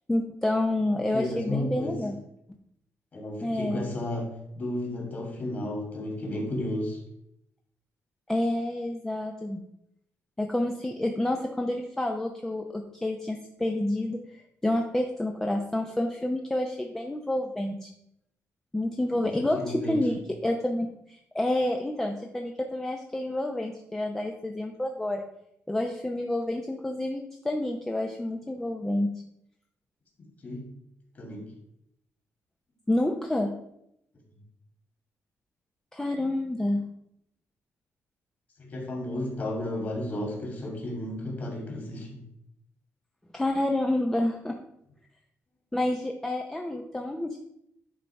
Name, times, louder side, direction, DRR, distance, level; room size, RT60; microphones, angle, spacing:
voice 1, 0.1-2.2 3.4-3.9 8.3-9.6 10.4-17.9 18.7-20.1 20.4-25.3 25.7-29.1 32.9-33.5 35.9-36.8 43.3-44.6 45.7-47.4, left 1 dB, 10° left, 2 dB, 0.6 m, -29 dB
voice 2, 0.9-1.9 3.1-7.0 19.1-20.1 30.4-30.7 31.1-31.5 38.6-42.2, left 1 dB, 35° left, 0 dB, 2.7 m, -33 dB
10.5 x 4.0 x 5.8 m, 0.78 s
cardioid pair, 165°, 5 cm